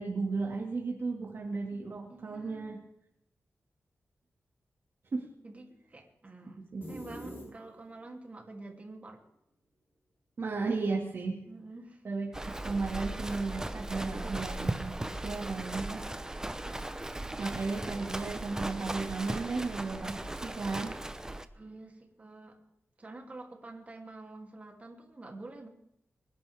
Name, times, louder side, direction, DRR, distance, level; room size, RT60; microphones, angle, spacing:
voice 1, 0.0-2.8 5.1-5.3 6.7-6.9 10.4-11.4 12.0-15.0 15.2-16.0 17.4-20.9, right 4 dB, 55° right, 0 dB, 2.1 m, -34 dB
voice 2, 2.1-2.9 5.4-6.6 6.9-9.2 11.5-12.0 16.3-16.7 21.5-22.5 23.0-25.7, right 2 dB, 30° right, 1 dB, 2.9 m, -48 dB
sound 1, 6.8-8.0, equal, 45° left, 7.7 m, -44 dB
Livestock farm animals working animals, 12.3-21.5, right 1 dB, 15° right, 0.8 m, -37 dB
24.5 x 11.0 x 3.5 m, 0.79 s
wide cardioid pair, 110°, 5 cm